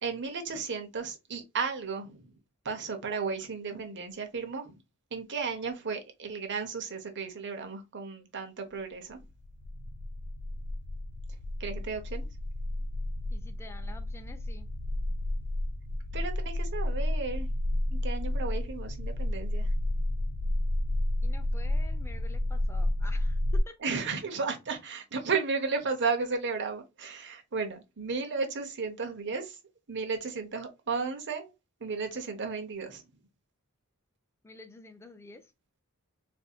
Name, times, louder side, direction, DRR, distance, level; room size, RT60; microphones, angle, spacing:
voice 1, 0.0-2.2 2.6-4.7 5.1-9.2 11.6-12.3 16.1-17.5 17.9-19.7 23.8-29.6 29.9-31.5 31.8-33.0, right 4 dB, 55° right, 0.9 m, -34 dB
sound 1, 9.2-23.6, left 1 dB, 75° left, 0.6 m, -31 dB
voice 2, 13.3-14.7 21.2-23.8 34.4-35.5, left 2 dB, 10° left, 0.5 m, -49 dB
4.0 x 2.6 x 2.3 m
head